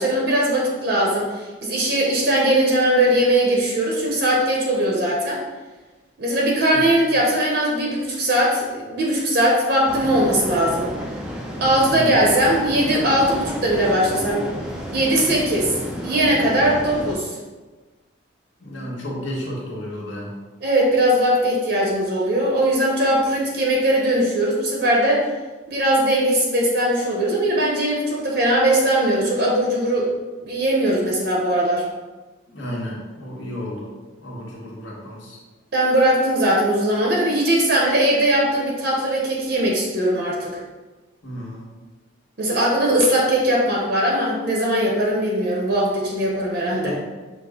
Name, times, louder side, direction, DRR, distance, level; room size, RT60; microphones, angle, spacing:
voice 1, 0.0-5.4 6.2-10.9 11.6-14.5 14.9-17.4 20.6-25.2 25.7-30.1 30.4-31.9 35.7-40.5 42.4-46.9, right 1 dB, 50° right, -3 dB, 0.7 m, -20 dB
sound 1, 9.9-17.2, equal, 5° right, 0.4 m, -31 dB
voice 2, 18.6-20.3 32.5-33.9 34.2-35.4 41.2-41.6 46.8-47.1, equal, 70° left, -4 dB, 1.1 m, -32 dB
6.0 x 2.0 x 3.6 m, 1.3 s
head